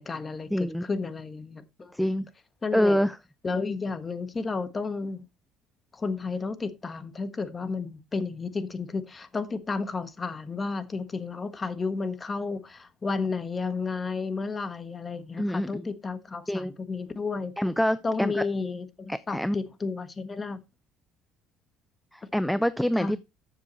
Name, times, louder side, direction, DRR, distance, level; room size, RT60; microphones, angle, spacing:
voice 1, 0.0-1.9 2.6-3.0 3.4-5.3 5.9-17.5 18.0-20.6 23.0-23.2, left 4 dB, 25° left, 1.4 m, -32 dB
voice 2, 0.5-0.8 1.9-2.3 2.7-3.2 15.4-15.8 16.5-16.7 17.6-18.4 19.1-19.6 22.1-23.2, equal, ahead, 0.5 m, -26 dB
13.5 x 7.3 x 3.1 m
cardioid pair, 105°, 0 cm